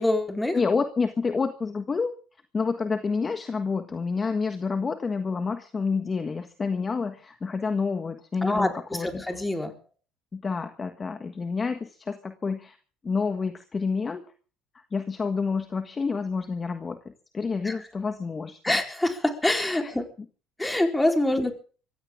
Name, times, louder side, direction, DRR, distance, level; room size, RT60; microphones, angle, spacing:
voice 1, 0.0-0.6 8.4-8.7 9.0-9.7 17.6-17.7 18.6-20.0 20.6-21.5, left 1 dB, 10° left, 4 dB, 4.1 m, -25 dB
voice 2, 0.5-2.1 2.5-9.2 10.3-12.8 13.0-14.2 14.9-17.0 17.3-18.8 19.8-19.9, left 4 dB, 25° left, 7 dB, 1.5 m, -28 dB
23.0 x 16.0 x 3.7 m, 0.40 s
cardioid pair, 120°, 0 cm